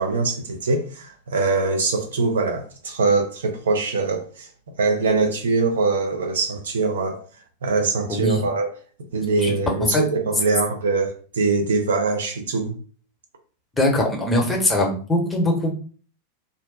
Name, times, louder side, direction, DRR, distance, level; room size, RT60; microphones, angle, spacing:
voice 1, 0.0-4.5 4.8-7.2 7.6-8.7 9.1-12.7, right 3 dB, 65° right, 0.6 m, -23 dB
voice 2, 8.1-8.4 9.4-9.5 9.9-10.0 13.8-15.7, left 1 dB, 10° left, 0.9 m, -21 dB
2.6 x 2.1 x 3.8 m
figure-of-eight pair, 90°, 0 cm